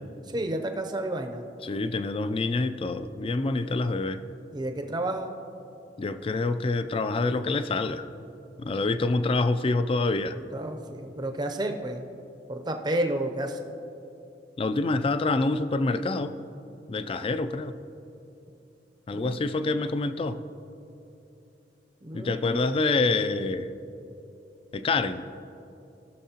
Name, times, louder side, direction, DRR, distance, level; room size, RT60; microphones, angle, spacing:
voice 1, 0.3-1.4 4.5-5.3 10.5-12.0 12.5-13.7 19.1-19.8 22.0-22.8, right 1 dB, 25° right, 5 dB, 0.6 m, -31 dB
voice 2, 1.6-4.2 6.0-8.1 8.6-10.4 14.6-16.4 16.9-17.7 19.1-20.4 22.1-23.7 24.7-25.2, left 3 dB, 30° left, 11 dB, 0.3 m, -26 dB
17.0 x 6.4 x 2.8 m, 2.8 s
head